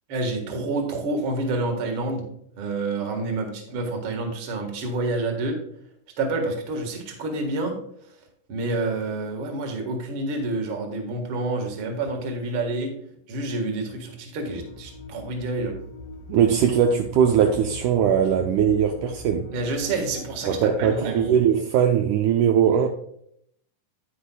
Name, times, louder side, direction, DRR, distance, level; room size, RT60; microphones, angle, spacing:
voice 1, 0.1-2.2 2.6-5.6 6.2-7.7 8.5-12.9 13.3-15.7 19.5-21.3, right 2 dB, 50° right, 2.0 m, -28 dB
sound 1, 14.5-21.3, left 1 dB, 70° left, 1.5 m, -41 dB
voice 2, 16.3-19.5 20.5-22.9, right 8 dB, 80° right, 2.0 m, -20 dB
10.0 x 9.5 x 2.3 m
omnidirectional pair, 3.8 m